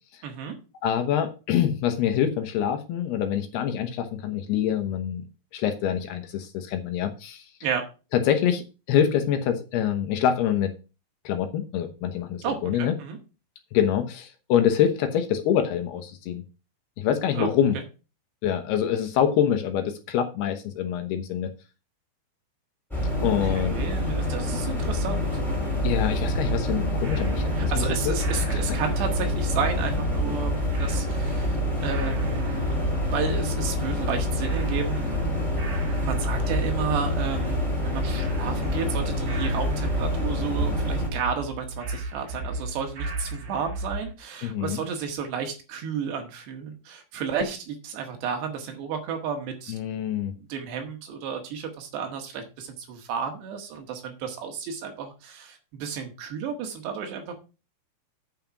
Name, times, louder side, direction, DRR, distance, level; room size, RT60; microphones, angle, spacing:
voice 1, 0.2-0.6 7.6-7.8 12.4-13.2 17.4-17.5 23.4-25.4 27.6-35.1 36.0-49.8 50.4-57.4, right 6 dB, 70° right, 4 dB, 3.7 m, -32 dB
voice 2, 0.8-5.2 5.5-7.5 8.1-10.7 11.2-12.9 13.7-16.4 17.0-17.8 18.4-21.5 23.2-23.8 25.8-28.1 28.5-28.6 44.4-44.8 49.7-50.3, left 9 dB, 75° left, 7 dB, 2.7 m, -25 dB
sound 1, 22.9-41.1, left 1 dB, ahead, 3.3 m, -27 dB
sound 2, 25.5-44.1, right 2 dB, 50° right, 1.7 m, -34 dB
9.0 x 5.6 x 5.9 m, 0.32 s
omnidirectional pair, 5.1 m